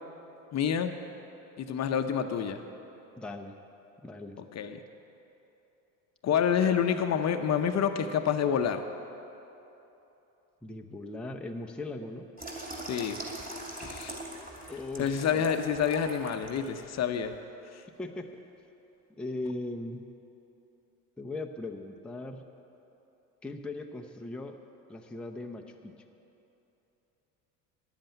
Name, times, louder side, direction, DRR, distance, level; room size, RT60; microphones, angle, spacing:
voice 1, 0.5-0.9 1.6-2.6 4.5-4.8 6.2-8.8 12.9-13.2 13.8-14.2 15.0-17.4, left 8 dB, 40° left, 7 dB, 0.8 m, -28 dB
voice 2, 3.2-3.5 4.0-4.4 10.6-12.3 14.7-15.5 18.0-18.4 19.2-20.0 21.2-22.4 23.4-24.6 24.9-25.9, left 2 dB, ahead, 2 dB, 0.6 m, -39 dB
Water tap faucet / Sink (filling or washing), 12.4-16.7 17.1-17.3, right 1 dB, 20° right, 2.7 m, -41 dB
10.5 x 7.7 x 9.0 m, 3.0 s
supercardioid pair, 95°, 41 cm